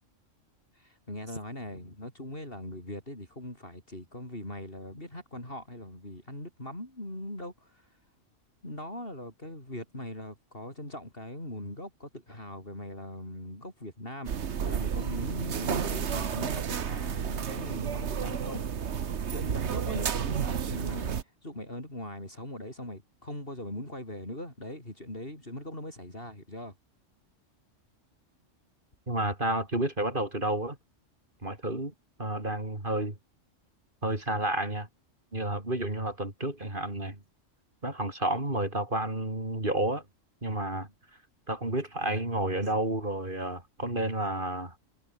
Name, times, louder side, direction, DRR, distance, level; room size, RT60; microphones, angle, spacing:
voice 1, 0.7-7.9 8.6-18.8 19.3-26.7, left 1 dB, 45° left, 8.3 m, -41 dB
sound 1, 14.3-21.2, right 7 dB, 65° right, 1.4 m, -31 dB
voice 2, 29.1-30.8 31.4-31.9 32.2-33.2 34.0-34.9 35.3-37.2 37.8-40.0 40.4-40.9 41.5-44.7, right 1 dB, 40° right, 5.0 m, -30 dB
omnidirectional pair, 1.3 m